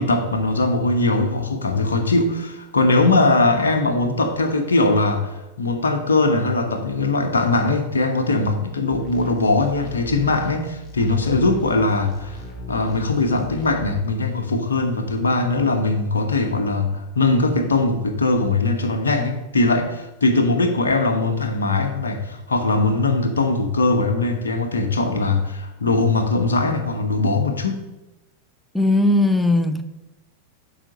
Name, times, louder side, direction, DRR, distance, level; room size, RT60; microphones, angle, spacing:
voice 1, 0.0-5.3 5.6-12.4 12.7-27.8, left 2 dB, 70° left, 5 dB, 1.0 m, -20 dB
sound 1, 8.9-13.9, left 1 dB, 25° left, 2.0 m, -38 dB
voice 2, 28.7-29.8, left 2 dB, 5° left, 8 dB, 0.7 m, -18 dB
7.4 x 5.0 x 6.3 m, 0.97 s
figure-of-eight pair, 90°, 0 cm